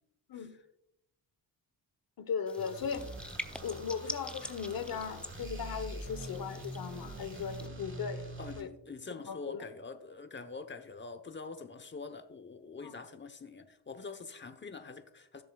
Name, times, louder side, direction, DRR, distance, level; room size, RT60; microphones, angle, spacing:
voice 1, 0.3-0.6 2.9-3.1 8.4-15.4, left 4 dB, 25° left, 0.9 m, -45 dB
voice 2, 2.2-3.0 3.6-8.7 9.3-9.6 12.8-12.9, left 6 dB, 55° left, 1.1 m, -38 dB
sound 1, 2.5-7.7, left 1 dB, 5° left, 0.5 m, -46 dB
sound 2, 2.6-8.6, right 1 dB, 30° right, 1.7 m, -44 dB
16.5 x 6.9 x 2.3 m
cardioid pair, 115°, 42 cm